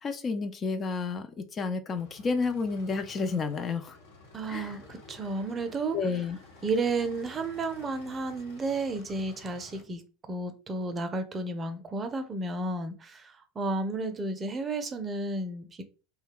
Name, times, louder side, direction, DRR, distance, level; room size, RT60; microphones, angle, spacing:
voice 1, 0.0-4.0 4.5-4.8 5.9-6.4, left 4 dB, 30° left, 0.4 m, -31 dB
sound 1, 1.9-9.8, left 3 dB, 70° left, 1.0 m, -52 dB
voice 2, 4.3-6.0 6.6-15.8, right 3 dB, 25° right, 0.6 m, -32 dB
2.2 x 2.2 x 3.4 m
figure-of-eight pair, 80°, 0 cm